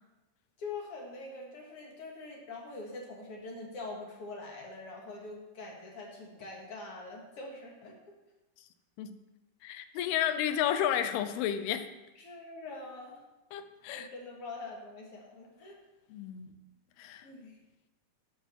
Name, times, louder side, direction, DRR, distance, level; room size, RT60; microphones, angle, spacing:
voice 1, 0.6-8.1 12.2-13.2 13.9-15.8 17.2-17.6, left 3 dB, 55° left, -1 dB, 1.7 m, -44 dB
voice 2, 9.6-11.9 13.5-14.1 16.1-16.5 17.0-17.3, left 10 dB, 85° left, 11 dB, 2.5 m, -31 dB
12.0 x 6.1 x 5.4 m, 1.0 s
omnidirectional pair, 4.6 m